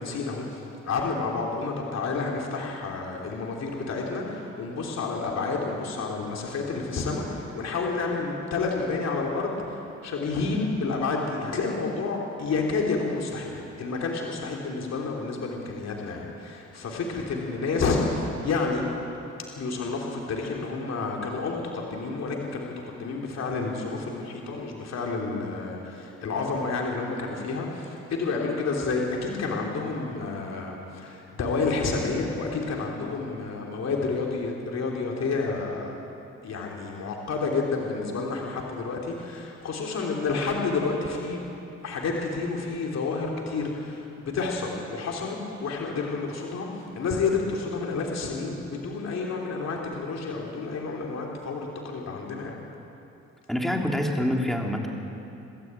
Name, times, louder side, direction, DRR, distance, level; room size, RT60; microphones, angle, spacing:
voice 1, 0.0-18.8 19.6-35.9 36.4-52.5, left 4 dB, 60° left, -1 dB, 3.2 m, -30 dB
voice 2, 53.5-54.9, left 1 dB, ahead, 0 dB, 3.1 m, -26 dB
23.5 x 13.0 x 9.1 m, 2.8 s
cardioid pair, 90°, 30 cm